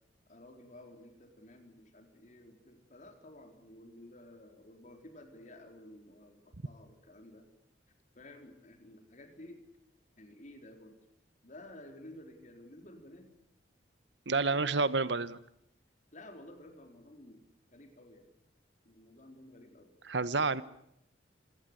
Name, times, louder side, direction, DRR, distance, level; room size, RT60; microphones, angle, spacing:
voice 1, 0.3-7.5 8.1-9.6 10.2-11.0 11.4-13.3 14.3-14.9 16.1-17.4 17.7-18.3 18.8-20.0, left 1 dB, 45° left, 5 dB, 4.3 m, -53 dB
voice 2, 14.3-15.4 20.1-20.6, right 3 dB, 70° right, 16 dB, 1.2 m, -29 dB
27.0 x 17.0 x 9.9 m, 0.76 s
head